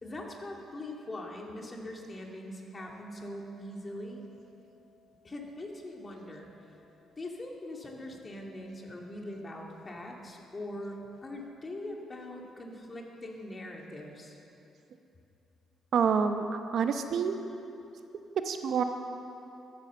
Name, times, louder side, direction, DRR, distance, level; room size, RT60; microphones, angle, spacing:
voice 1, 0.0-4.2 5.2-6.5 7.2-14.4, left 1 dB, 30° left, 0 dB, 2.2 m, -42 dB
sound 1, 2.8-11.4, left 2 dB, 20° right, 3.5 m, -64 dB
voice 2, 15.9-17.4 18.4-18.8, right 6 dB, 65° right, 7 dB, 0.8 m, -28 dB
13.5 x 9.8 x 6.9 m, 2.8 s
cardioid pair, 90°, 0 cm